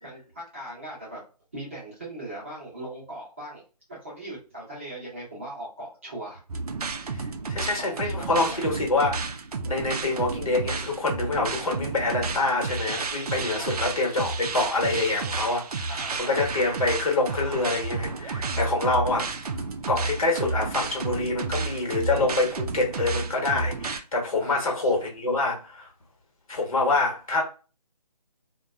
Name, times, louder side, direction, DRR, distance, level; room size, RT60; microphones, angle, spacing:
voice 1, 0.0-1.2 1.5-3.6 3.9-6.4 7.8-8.7 13.5-13.9 15.9-16.5 24.4-24.9, right 1 dB, 20° right, 0.6 m, -39 dB
sound 1, 6.5-24.0, right 4 dB, 65° right, 0.4 m, -31 dB
voice 2, 7.1-9.3 9.6-19.3 19.9-25.9 26.5-27.4, left 2 dB, 55° left, 1.1 m, -26 dB
2.5 x 2.2 x 2.3 m
hypercardioid pair, 175°, 21 cm